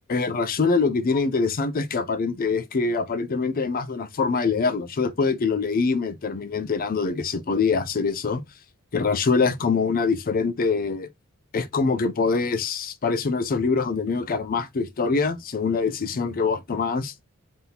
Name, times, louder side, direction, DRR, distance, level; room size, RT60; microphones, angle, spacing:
voice 1, 0.1-8.4 8.9-11.1 11.5-17.1, left 4 dB, 40° left, 0.5 m, -24 dB
3.6 x 2.8 x 3.9 m
head